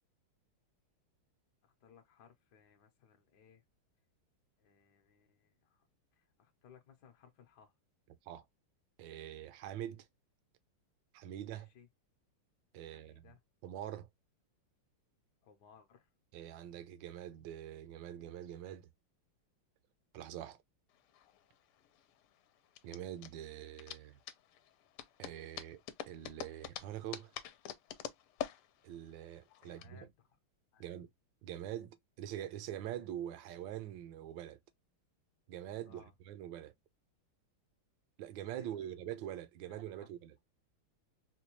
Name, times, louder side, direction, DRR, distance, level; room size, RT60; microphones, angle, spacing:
voice 1, 1.6-3.6 4.6-5.9 6.1-7.7 11.5-11.9 12.8-13.4 15.4-16.1 29.6-30.1 30.7-30.9 35.9-36.1 38.6-38.9 39.6-40.1, left 7 dB, 65° left, 1.1 m, -63 dB
voice 2, 9.0-10.1 11.1-11.7 12.7-13.2 13.6-14.1 16.3-18.9 20.1-20.6 22.8-24.2 25.2-27.3 28.8-30.1 30.8-31.1 31.4-34.6 35.5-36.7 38.2-40.4, right 11 dB, 75° right, 1.2 m, -44 dB
sound 1, 20.9-29.9, left 11 dB, 80° left, 1.4 m, -46 dB
4.3 x 2.2 x 2.9 m
omnidirectional pair, 2.4 m